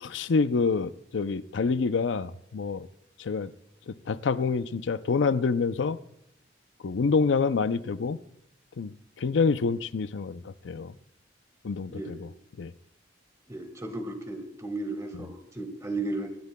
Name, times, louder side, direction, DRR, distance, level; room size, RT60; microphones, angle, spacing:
voice 1, 0.0-2.9 3.2-3.5 3.9-6.0 6.8-8.2 8.8-10.9 11.6-12.3 12.6-12.7, left 4 dB, 80° left, 0.5 m, -27 dB
voice 2, 13.5-16.4, right 2 dB, 15° right, 1.5 m, -35 dB
25.0 x 12.0 x 2.2 m
head